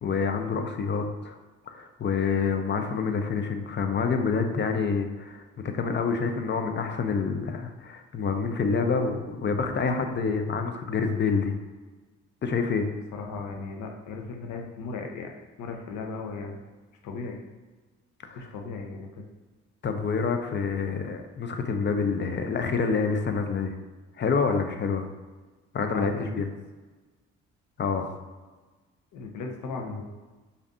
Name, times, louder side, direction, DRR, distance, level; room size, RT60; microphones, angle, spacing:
voice 1, 0.0-1.3 1.7-11.5 12.4-12.9 18.3-18.4 19.8-23.7 24.2-25.1 25.7-26.5 27.8-28.1, left 5 dB, 35° left, 6 dB, 0.6 m, -27 dB
voice 2, 13.1-16.6 17.0-17.4 18.3-19.2 25.8-26.4 29.1-30.0, left 4 dB, 65° left, 2 dB, 0.8 m, -37 dB
5.1 x 2.7 x 2.5 m, 1.3 s
hypercardioid pair, 60°, 33 cm